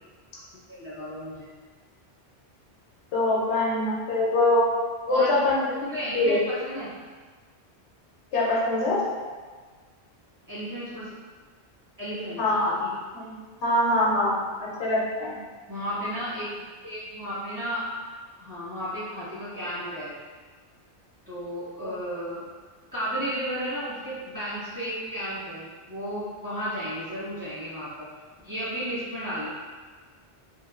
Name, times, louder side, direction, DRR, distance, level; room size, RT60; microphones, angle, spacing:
voice 1, 0.5-1.5 5.1-5.3 5.8-6.9 10.5-11.1 12.0-12.9 15.7-17.9 18.4-20.1 21.3-22.4 22.9-28.1 28.4-29.5, equal, 20° right, -13 dB, 1.2 m, -33 dB
voice 2, 3.1-4.7 5.1-5.7 5.9-6.4 8.3-9.0 12.4-12.7 13.1-15.3 21.8-21.9, left 1 dB, 85° left, -5 dB, 1.0 m, -24 dB
3.0 x 2.3 x 2.3 m, 1.5 s
omnidirectional pair, 1.1 m